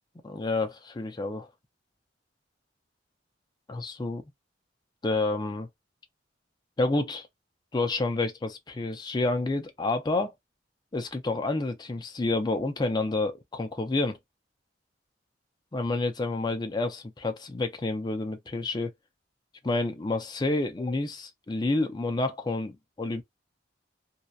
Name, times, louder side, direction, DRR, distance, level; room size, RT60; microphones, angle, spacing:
voice 1, 0.2-1.5 3.7-4.2 5.0-5.7 6.8-7.3 7.7-10.3 10.9-14.2 15.7-18.9 19.6-23.2, left 2 dB, 25° left, 0.4 m, -29 dB
2.7 x 2.1 x 2.3 m
head